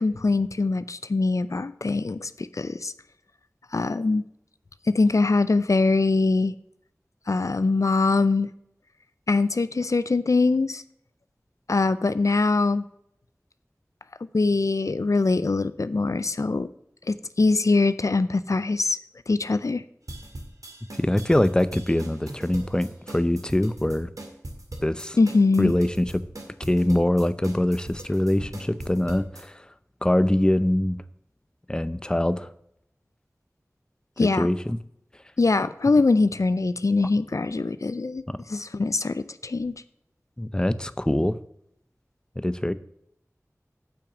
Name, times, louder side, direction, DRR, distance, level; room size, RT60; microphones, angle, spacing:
voice 1, 0.0-2.9 3.7-4.2 4.9-6.5 7.3-8.5 9.3-10.8 11.7-12.8 14.3-16.7 17.1-19.0 19.3-19.8 25.2-25.7 34.2-34.5 35.4-39.7, left 3 dB, 65° left, 14 dB, 0.4 m, -23 dB
sound 1, 20.1-29.4, right 1 dB, 85° right, 2.0 m, -40 dB
voice 2, 21.0-24.1 24.8-25.2 25.6-26.2 26.6-29.6 30.0-31.0 31.7-32.5 34.2-34.8 38.3-38.4 40.4-41.4 42.4-42.7, left 1 dB, 15° left, 14 dB, 0.6 m, -23 dB
8.6 x 5.9 x 7.4 m, 0.73 s
wide cardioid pair, 45°, 6 cm